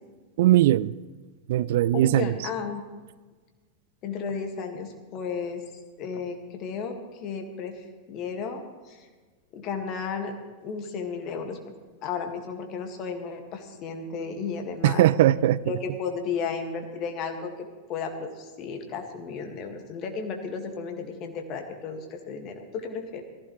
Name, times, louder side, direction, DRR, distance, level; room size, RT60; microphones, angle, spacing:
voice 1, 0.4-0.9 1.5-2.3 14.8-15.6, right 13 dB, 55° right, 20 dB, 0.3 m, -20 dB
voice 2, 1.9-2.8 4.0-5.6 6.0-9.1 9.5-10.3 10.6-11.7 12.0-15.1 15.7-17.5 17.9-23.2, left 5 dB, 35° left, 4 dB, 1.9 m, -34 dB
18.5 x 14.5 x 3.2 m, 1.4 s
figure-of-eight pair, 90°, 0 cm